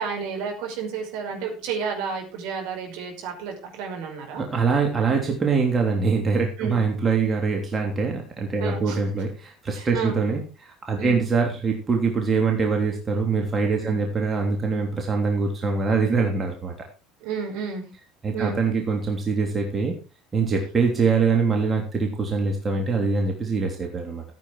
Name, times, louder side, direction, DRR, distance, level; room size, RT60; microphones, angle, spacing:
voice 1, 0.0-4.5 6.6-6.8 8.6-9.0 9.7-10.2 11.0-11.2 13.8-14.0 17.2-17.9 18.3-18.6, right 6 dB, 60° right, 1 dB, 5.5 m, -31 dB
voice 2, 4.4-10.4 10.9-16.7 18.2-20.0 20.3-24.2, right 4 dB, 25° right, 1 dB, 3.3 m, -23 dB
15.0 x 8.4 x 4.7 m, 0.33 s
figure-of-eight pair, 65°, 0 cm